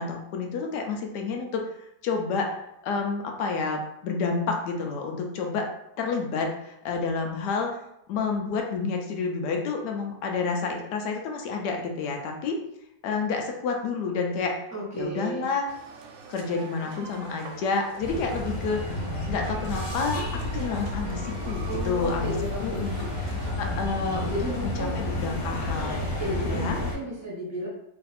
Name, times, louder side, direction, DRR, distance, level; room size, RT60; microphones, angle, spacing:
voice 1, 0.0-1.6 2.0-2.6 2.8-5.7 6.0-7.7 8.1-12.6 13.0-14.6 14.9-15.7 16.3-19.0 19.3-22.3 22.6-22.9 23.6-24.4 24.6-26.0 26.4-26.8, left 4 dB, 75° left, 2 dB, 1.1 m, -29 dB
voice 2, 14.7-15.5 21.7-23.2 24.3-25.0 26.2-27.7, equal, 15° right, -5 dB, 0.7 m, -33 dB
sound 1, 15.7-23.5, right 5 dB, 85° right, 1.3 m, -44 dB
sound 2, 18.0-26.9, left 1 dB, 55° left, 1.4 m, -31 dB
3.2 x 2.6 x 4.1 m, 0.80 s
omnidirectional pair, 2.0 m